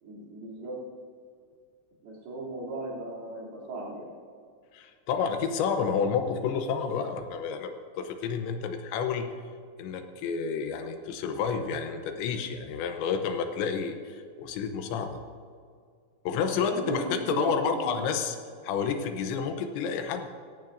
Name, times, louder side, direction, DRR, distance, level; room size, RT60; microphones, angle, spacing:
voice 1, 0.0-0.8 2.0-4.1 16.6-18.2, right 2 dB, 60° right, -5 dB, 4.7 m, -36 dB
voice 2, 4.7-9.3 9.8-15.2 16.3-18.4 18.6-20.3, left 6 dB, 80° left, 7 dB, 3.0 m, -30 dB
18.0 x 16.5 x 2.6 m, 2.1 s
omnidirectional pair, 5.3 m